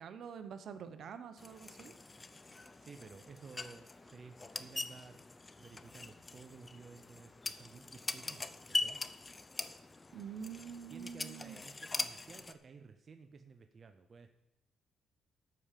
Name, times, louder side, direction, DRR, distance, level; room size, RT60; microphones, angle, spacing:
voice 1, 0.0-1.9 10.1-11.6, right 7 dB, 65° right, 9 dB, 1.0 m, -46 dB
sound 1, 1.4-12.5, left 2 dB, 25° left, 0.7 m, -42 dB
voice 2, 2.5-5.2 5.6-9.0 10.9-14.3, right 5 dB, 40° right, 7 dB, 0.7 m, -54 dB
12.0 x 5.1 x 7.5 m, 0.91 s
cardioid pair, 90°, 0 cm